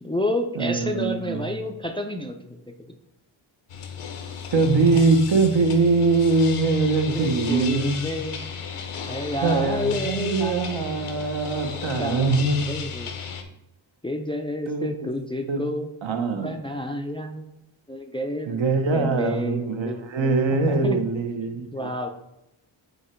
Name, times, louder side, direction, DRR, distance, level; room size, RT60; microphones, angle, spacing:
voice 1, 0.0-2.6 2.9-3.0 7.1-8.4 9.0-10.9 11.7-13.2 14.0-15.9 16.4-17.5 17.9-20.1 20.7-21.0 21.7-22.1, left 1 dB, 10° left, 5 dB, 0.4 m, -30 dB
voice 2, 0.6-1.4 4.5-8.0 9.4-12.7 14.7-14.9 15.5-15.6 16.0-16.6 18.5-21.9, right 3 dB, 65° right, 6 dB, 1.0 m, -22 dB
sound 1, 3.7-13.4, left 7 dB, 90° left, 0.9 m, -34 dB
8.0 x 2.9 x 4.4 m, 0.93 s
wide cardioid pair, 130°, 49 cm